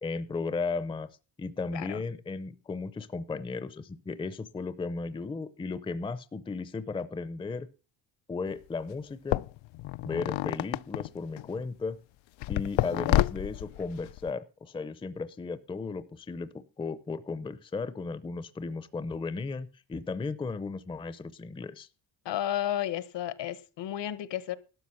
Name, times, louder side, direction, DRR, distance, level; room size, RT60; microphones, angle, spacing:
voice 1, 0.0-1.1 1.4-7.7 8.3-9.4 10.0-12.0 12.5-21.9, left 4 dB, 10° left, 0.5 m, -35 dB
sound 1, 8.5-8.6 9.3-11.6 12.4-14.3, left 16 dB, 85° left, 0.5 m, -29 dB
voice 2, 22.2-24.6, left 11 dB, 70° left, 1.1 m, -32 dB
12.5 x 6.0 x 8.4 m
cardioid pair, 145°, 44 cm